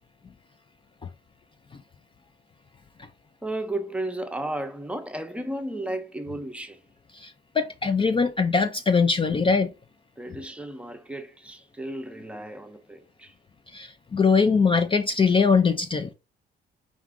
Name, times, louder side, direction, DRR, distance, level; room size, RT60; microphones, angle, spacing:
voice 1, 3.4-6.9 10.2-13.3, right 1 dB, 5° right, 0.7 m, -34 dB
voice 2, 7.1-9.7 13.7-16.1, left 5 dB, 25° left, 0.4 m, -22 dB
4.9 x 2.4 x 3.7 m
cardioid pair, 90°, 20 cm